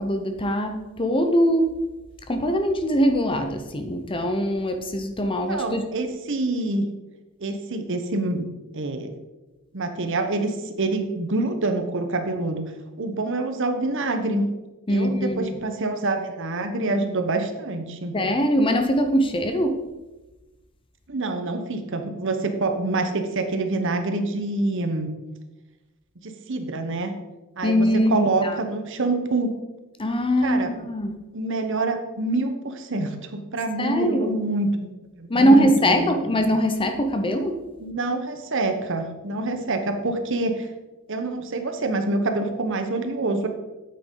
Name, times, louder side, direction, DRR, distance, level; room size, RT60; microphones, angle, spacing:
voice 1, 0.0-1.8 2.3-5.8 14.9-15.6 18.1-19.8 27.6-28.6 30.0-31.2 33.8-34.3 35.3-37.6, equal, 25° left, 7 dB, 0.7 m, -22 dB
voice 2, 5.5-6.9 7.4-8.5 8.7-9.1 9.7-12.7 13.0-14.5 14.9-18.2 21.1-25.1 26.2-27.1 27.6-29.5 30.4-30.7 31.3-34.9 35.2-36.3 37.8-40.7 41.1-43.5, right 2 dB, 60° right, 6 dB, 1.1 m, -26 dB
9.0 x 8.8 x 3.9 m, 1.1 s
head